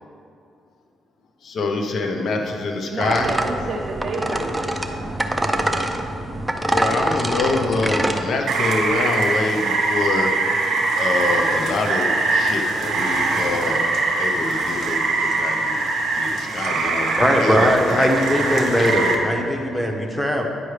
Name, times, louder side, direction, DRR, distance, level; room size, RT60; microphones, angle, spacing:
voice 1, 1.4-3.3 6.7-10.3 10.9-13.9 14.2-15.7 16.2-19.3, left 3 dB, 60° left, 3 dB, 0.8 m, -26 dB
voice 2, 2.9-5.2, right 3 dB, 50° right, -2 dB, 0.6 m, -30 dB
sound 1, 3.0-8.2, right 1 dB, 10° right, 0.5 m, -24 dB
Rain, 8.5-19.1, right 3 dB, 65° right, 1.1 m, -22 dB
voice 3, 17.2-20.5, equal, 10° left, 2 dB, 0.9 m, -20 dB
9.5 x 4.6 x 3.3 m, 2.4 s
cardioid pair, 90°, 0 cm